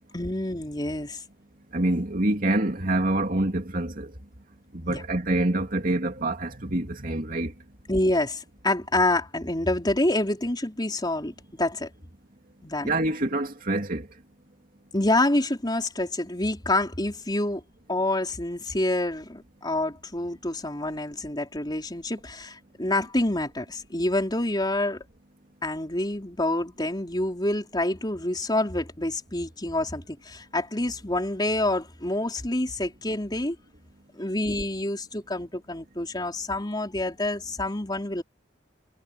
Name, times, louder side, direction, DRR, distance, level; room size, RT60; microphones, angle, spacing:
voice 1, 0.1-1.2 4.9-5.0 7.9-11.9 12.6-12.9 14.9-17.6 17.9-25.0 25.6-33.6 34.1-38.2, left 1 dB, 25° left, 4.2 m, -27 dB
voice 2, 1.7-4.1 4.7-7.5 12.8-14.1, right 1 dB, 50° right, 2.9 m, -26 dB
head